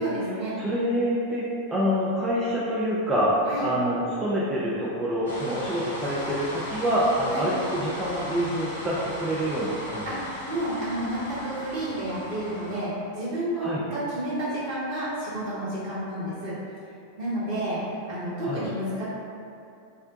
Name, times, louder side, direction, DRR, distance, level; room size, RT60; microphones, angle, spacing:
voice 1, 0.0-0.6 3.5-3.7 7.3-7.5 10.1-10.2 10.5-16.5 17.2-17.8 18.1-19.1, right 1 dB, 45° right, -9 dB, 1.1 m, -30 dB
voice 2, 0.6-3.3 3.6-10.2 13.6-13.8 18.4-18.6, equal, 15° right, -8 dB, 0.4 m, -26 dB
sound 1, 5.3-12.8, left 1 dB, 70° left, 0.7 m, -37 dB
2.5 x 2.1 x 3.7 m, 2.5 s
figure-of-eight pair, 90°, 0 cm